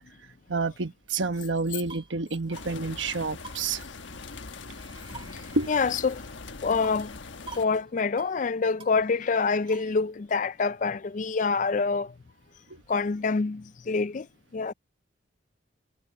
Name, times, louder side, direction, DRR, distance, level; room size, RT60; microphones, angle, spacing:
voice 1, 0.5-3.8 5.5-5.7 12.7-12.8, right 3 dB, 85° right, 1.2 m, -29 dB
sound 1, 1.6-2.2 2.6-2.7 3.0-3.1 3.4-4.4 4.7-6.4 6.8-7.2 7.5-7.7 8.0-8.4 8.8-10.0, right 3 dB, 30° right, 2.3 m, -48 dB
sound 2, 2.5-7.6, left 3 dB, 85° left, 1.3 m, -42 dB
voice 2, 5.2-6.2 6.6-7.2 7.6-12.1 12.9-14.3 14.5-14.7, left 4 dB, 40° left, 0.4 m, -26 dB
head